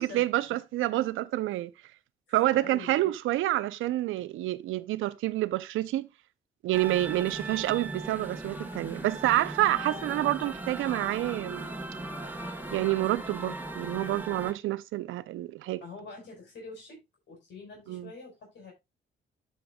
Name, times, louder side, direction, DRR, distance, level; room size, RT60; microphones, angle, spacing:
voice 1, 0.0-1.7 2.3-6.1 6.6-11.7 12.7-15.8 17.9-18.1, right 15 dB, 85° right, 0.6 m, -28 dB
voice 2, 2.3-3.1 15.8-17.0 17.3-18.7, left 4 dB, 65° left, 4.8 m, -46 dB
sound 1, 6.7-14.5, right 2 dB, 10° right, 1.6 m, -38 dB
15.0 x 5.2 x 2.3 m
cardioid pair, 90°, 20 cm